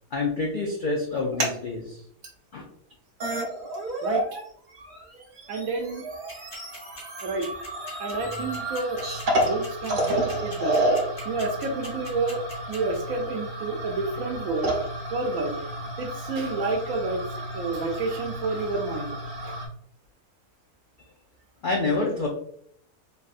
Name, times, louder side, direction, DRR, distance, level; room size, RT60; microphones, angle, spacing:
voice 1, 0.1-2.0 2.5-2.6 21.6-22.3, left 3 dB, 70° left, -1 dB, 0.4 m, -27 dB
sound 1, 1.1-1.6 2.2-2.3 2.9-3.0 3.2-4.4 4.7-19.7, right 1 dB, 50° right, 0.6 m, -31 dB
voice 2, 4.0-4.4 5.5-6.0 7.2-7.5 8.0-9.0 9.3-10.8 11.2-14.7 15.1-15.6 16.0-17.2 17.5-19.6, right 3 dB, 75° right, 4 dB, 1.1 m, -29 dB
sound 2, 6.3-13.0, left 1 dB, 50° left, 1.7 m, -41 dB
3.4 x 2.6 x 2.4 m, 0.66 s
omnidirectional pair, 1.6 m